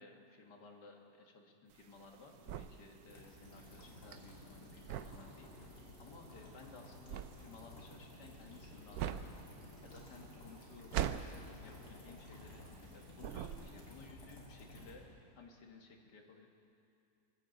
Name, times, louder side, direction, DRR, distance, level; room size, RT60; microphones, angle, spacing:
voice 1, 0.0-15.0 15.4-16.5, left 3 dB, 90° left, 2 dB, 2.1 m, -57 dB
sound 1, 1.7-12.9 13.2-14.0, right 10 dB, 75° right, 1.0 m, -43 dB
sound 2, 2.3-12.2, right 1 dB, 40° right, 3.0 m, -62 dB
sound 3, 3.1-14.9, left 2 dB, 75° left, 3.5 m, -55 dB
22.0 x 16.0 x 4.0 m, 2.5 s
omnidirectional pair, 1.7 m